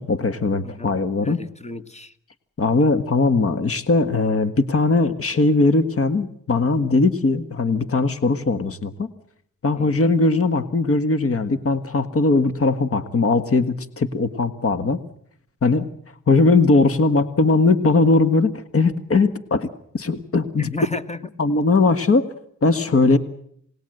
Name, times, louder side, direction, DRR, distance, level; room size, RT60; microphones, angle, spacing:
voice 1, 0.0-1.4 2.6-9.1 9.6-15.0 15.6-15.9 16.3-19.7 19.9-20.7 21.4-22.3 22.6-23.2, left 3 dB, 45° left, 12 dB, 1.6 m, -19 dB
voice 2, 0.6-2.1 9.8-10.0 16.3-16.4 20.6-21.2, left 3 dB, 20° left, 10 dB, 1.6 m, -33 dB
27.5 x 19.5 x 7.9 m, 0.69 s
cardioid pair, 75°, 31 cm